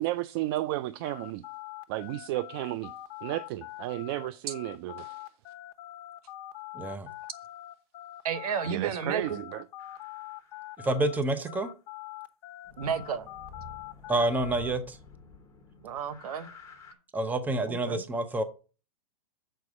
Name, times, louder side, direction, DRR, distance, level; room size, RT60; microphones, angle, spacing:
voice 1, 0.0-1.5 1.9-2.9 3.2-5.3 8.6-9.6, right 16 dB, 40° right, 0.4 m, -33 dB
sound 1, 1.0-11.2 11.5-14.7, left 15 dB, 40° left, 0.9 m, -44 dB
voice 2, 6.7-7.1 10.8-11.7 14.1-15.0 17.1-18.4, right 2 dB, 10° right, 0.7 m, -28 dB
voice 3, 8.2-9.4 12.8-13.3 15.8-16.5 17.7-18.0, right 7 dB, 70° right, 1.0 m, -32 dB
sound 2, 9.8-11.2 12.6-16.9, left 4 dB, 15° left, 1.6 m, -50 dB
6.7 x 4.6 x 6.1 m
hypercardioid pair, 135°, 20 cm